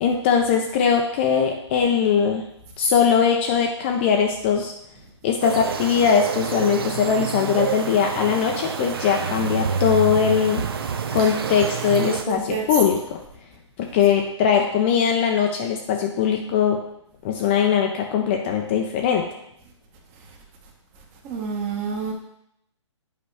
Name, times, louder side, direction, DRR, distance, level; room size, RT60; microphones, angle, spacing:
voice 1, 0.0-2.4 2.8-4.7 5.2-10.6 11.1-13.2 13.8-16.8 17.2-19.2, left 7 dB, 25° left, 2 dB, 0.5 m, -21 dB
sound 1, 5.4-12.2, right 6 dB, 50° right, 0.6 m, -28 dB
voice 2, 12.3-12.6 21.2-22.1, right 6 dB, 25° right, 2 dB, 1.1 m, -28 dB
8.3 x 5.1 x 3.3 m, 0.76 s
figure-of-eight pair, 140°, 16 cm